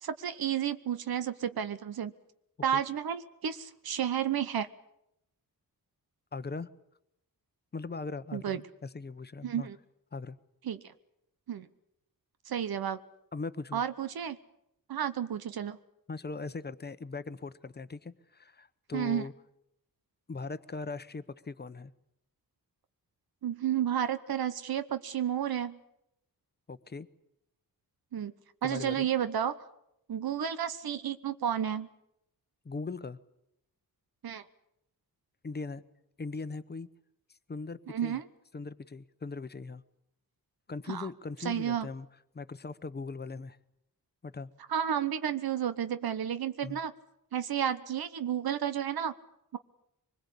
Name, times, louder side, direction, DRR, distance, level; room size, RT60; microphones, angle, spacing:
voice 1, 0.0-2.1 2.6-4.7 8.3-8.6 9.4-9.8 10.6-10.8 11.5-11.7 12.5-13.0 13.7-14.4 14.9-15.8 18.9-19.3 23.4-25.8 28.1-28.3 28.6-29.6 30.1-31.9 34.2-34.4 37.9-38.2 40.9-41.1 41.4-41.9 44.7-46.9 47.3-49.1, right 9 dB, 85° right, 12 dB, 1.0 m, -31 dB
voice 2, 6.3-6.7 7.7-9.7 10.1-10.4 13.3-13.8 16.1-19.3 20.3-21.9 26.7-27.1 28.6-29.1 32.6-33.2 35.4-35.8 36.2-36.9 37.5-38.2 38.5-39.8 40.7-42.1 42.3-43.6 44.2-44.5 46.6-46.8, left 4 dB, 30° left, 13 dB, 0.9 m, -39 dB
24.5 x 21.0 x 8.4 m, 0.81 s
wide cardioid pair, 140°, 35 cm